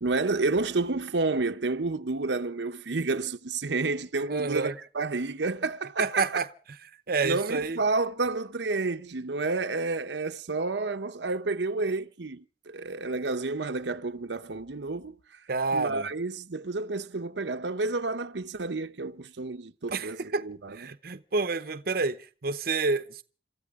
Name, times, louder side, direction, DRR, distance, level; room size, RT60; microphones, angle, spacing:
voice 1, 0.0-6.4 7.2-15.1 15.7-20.9, right 3 dB, 85° right, 0.9 m, -30 dB
voice 2, 4.3-4.7 6.0-6.5 7.1-7.8 15.5-16.1 19.9-20.4 20.7-23.2, right 3 dB, 55° right, 0.8 m, -29 dB
27.5 x 14.0 x 3.7 m
head